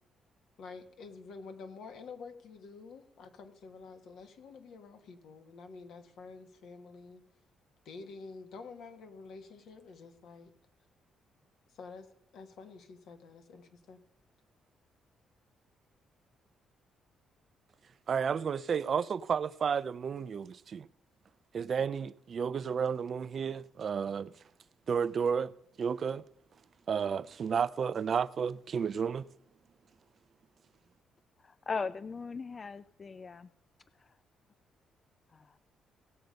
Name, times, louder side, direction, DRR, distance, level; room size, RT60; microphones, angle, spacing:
voice 1, 0.6-7.2 7.8-10.5 11.7-12.1 12.3-14.0, left 4 dB, 75° left, 1.4 m, -49 dB
voice 2, 18.1-20.9 21.5-24.3 24.9-25.5 25.8-26.3 26.9-29.3, right 6 dB, 50° right, 0.4 m, -32 dB
voice 3, 31.4-33.5 35.3-35.5, left 4 dB, 35° left, 0.4 m, -38 dB
17.5 x 6.7 x 5.2 m
cardioid pair, 90°, 0 cm